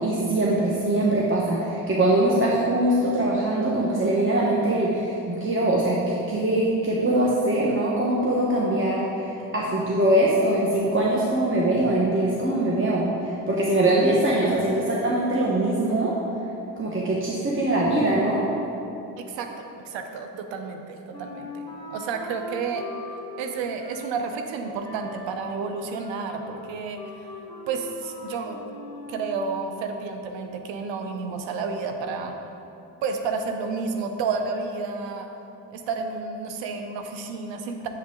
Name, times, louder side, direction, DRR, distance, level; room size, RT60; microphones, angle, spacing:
voice 1, 0.0-16.1 16.8-18.5, right 1 dB, 30° right, -5 dB, 1.2 m, -22 dB
voice 2, 19.2-21.6 21.9-22.9 23.4-27.3 27.7-28.6 29.1-32.3 33.0-35.3 35.7-37.9, right 4 dB, 90° right, 5 dB, 0.7 m, -31 dB
Wind instrument woodwind instrument, 21.1-29.5, left 1 dB, 10° left, 1.5 m, -41 dB
7.4 x 7.2 x 3.8 m, 2.8 s
supercardioid pair, 50°, 43 cm